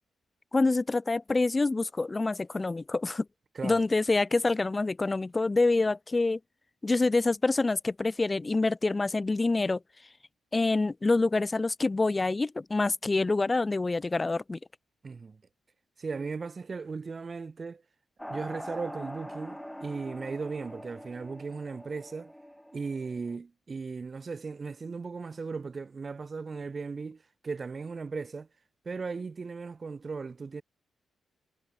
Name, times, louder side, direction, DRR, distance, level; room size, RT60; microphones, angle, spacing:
voice 1, 0.5-3.3 3.6-6.4 6.8-9.8 10.5-14.6, left 3 dB, 20° left, 0.4 m, -26 dB
voice 2, 15.0-15.4 16.0-17.8 18.3-22.3 22.7-28.5 28.8-30.6, right 4 dB, 35° right, 1.7 m, -37 dB
sound 1, 18.2-23.4, equal, ahead, 2.7 m, -43 dB
cardioid pair, 125°, 0 cm